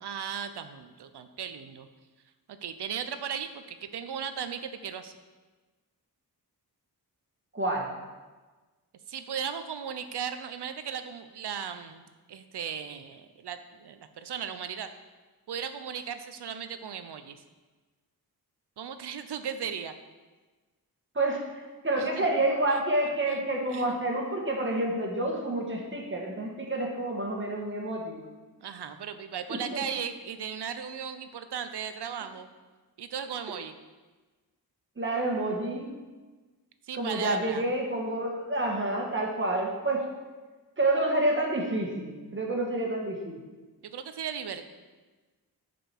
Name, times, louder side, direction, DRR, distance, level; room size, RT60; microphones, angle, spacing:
voice 1, 0.0-1.9 2.5-5.2 9.1-14.9 15.5-17.4 18.8-20.0 22.0-22.3 22.7-22.8 23.3-23.9 28.6-32.5 33.0-33.7 36.9-37.6 43.8-44.6, right 7 dB, 85° right, 10 dB, 0.8 m, -37 dB
voice 2, 7.5-7.9 21.2-28.3 29.7-29.8 35.0-36.0 36.9-40.0 40.8-43.4, right 2 dB, 30° right, 0 dB, 1.7 m, -29 dB
10.5 x 5.1 x 6.1 m, 1.3 s
wide cardioid pair, 160°, 39 cm